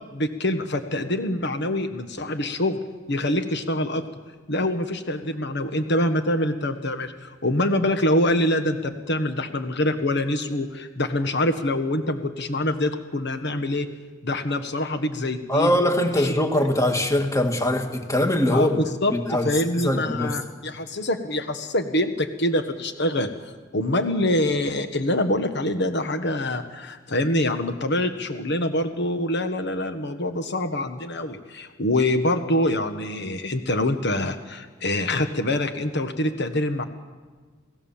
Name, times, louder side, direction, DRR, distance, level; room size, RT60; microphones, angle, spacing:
voice 1, 0.1-2.8 3.1-4.1 4.5-13.9 14.2-15.8 16.1-16.3 18.5-23.3 23.7-36.8, left 1 dB, 60° left, 7 dB, 1.4 m, -25 dB
voice 2, 15.5-18.8 19.3-19.5 19.8-20.4, left 1 dB, 15° left, 5 dB, 1.9 m, -22 dB
29.5 x 17.5 x 7.3 m, 1.4 s
head